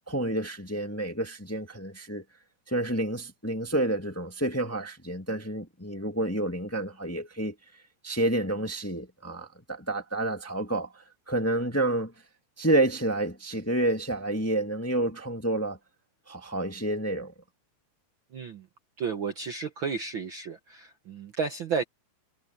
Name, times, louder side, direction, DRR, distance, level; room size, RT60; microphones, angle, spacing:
voice 1, 0.1-2.2 2.7-12.1 12.6-15.8 16.3-17.3, right 1 dB, 5° left, 1.4 m, -29 dB
voice 2, 18.3-18.7 19.0-21.8, right 5 dB, 55° right, 1.5 m, -32 dB
omnidirectional pair, 3.5 m